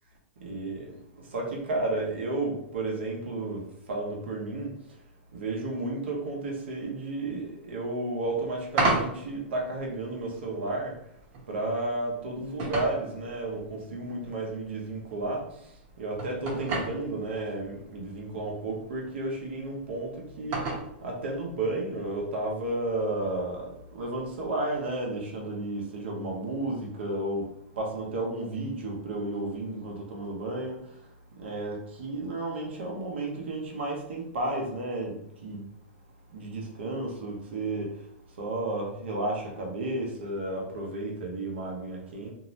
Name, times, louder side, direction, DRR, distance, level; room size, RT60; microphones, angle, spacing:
voice 1, 0.4-0.9 1.3-4.7 5.3-10.9 11.5-15.4 16.0-20.1 20.4-20.6 21.0-23.7 23.9-27.5 27.8-30.9 31.4-35.6 36.3-37.9 38.4-42.3, right 2 dB, 80° right, -1 dB, 0.8 m, -32 dB
sound 1, 8.2-24.5, right 2 dB, 40° right, 0.9 m, -37 dB
2.7 x 2.0 x 2.8 m, 0.75 s
hypercardioid pair, 135°, 6 cm